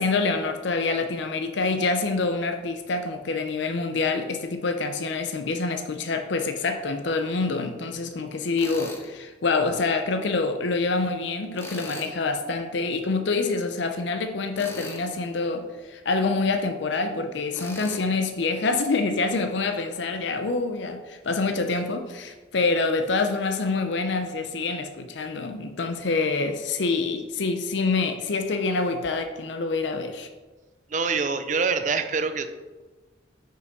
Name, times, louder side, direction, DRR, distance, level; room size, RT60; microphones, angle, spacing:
voice 1, 0.0-30.3, left 3 dB, 70° left, 6 dB, 0.6 m, -26 dB
Tools, 8.6-9.1 11.5-12.1 14.5-15.1 17.5-18.0, left 2 dB, 15° left, 0.7 m, -38 dB
voice 2, 30.9-32.5, right 5 dB, 40° right, 9 dB, 0.5 m, -25 dB
6.4 x 5.2 x 5.2 m, 1.2 s
head